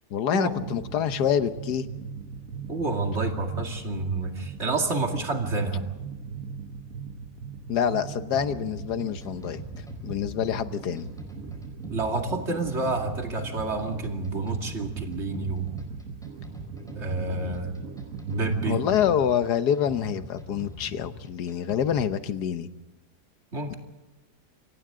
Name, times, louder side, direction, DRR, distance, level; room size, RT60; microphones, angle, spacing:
voice 1, 0.1-1.9 7.7-9.6 10.0-11.1 18.6-22.7, left 9 dB, 70° left, 11 dB, 1.5 m, -26 dB
sound 1, 0.6-19.2, right 6 dB, 60° right, 1.4 m, -40 dB
voice 2, 2.7-5.9 11.9-15.7 17.0-17.7 18.3-18.8 23.5-23.8, right 3 dB, 40° right, 3 dB, 2.6 m, -29 dB
sound 2, 8.3-22.3, left 1 dB, ahead, 4.5 m, -43 dB
28.5 x 24.5 x 3.8 m, 1.1 s
omnidirectional pair, 1.8 m